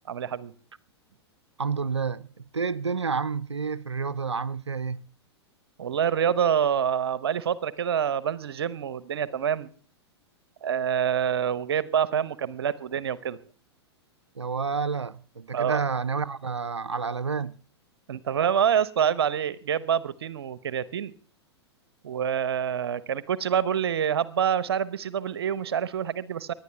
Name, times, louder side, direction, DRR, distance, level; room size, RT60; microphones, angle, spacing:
voice 1, 0.1-0.5 5.8-9.7 10.6-13.4 15.5-15.8 18.1-21.1 22.0-26.5, right 8 dB, 65° right, 0.9 m, -26 dB
voice 2, 1.6-5.0 14.4-17.6, right 5 dB, 85° right, 0.6 m, -29 dB
24.5 x 10.5 x 3.4 m
figure-of-eight pair, 100°, 14 cm